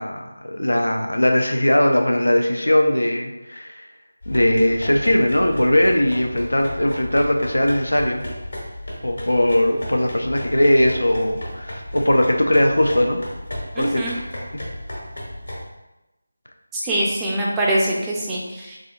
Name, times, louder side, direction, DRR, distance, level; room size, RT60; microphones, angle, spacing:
voice 1, 0.0-3.8 4.3-8.2 9.0-13.2 13.8-14.0, left 1 dB, 90° left, 3 dB, 0.5 m, -19 dB
sound 1, 4.2-15.6, left 1 dB, 65° left, 1.3 m, -34 dB
voice 2, 13.8-14.1 16.7-18.8, right 1 dB, 10° right, -5 dB, 0.4 m, -23 dB
3.7 x 3.3 x 2.4 m, 0.99 s
figure-of-eight pair, 165°, 0 cm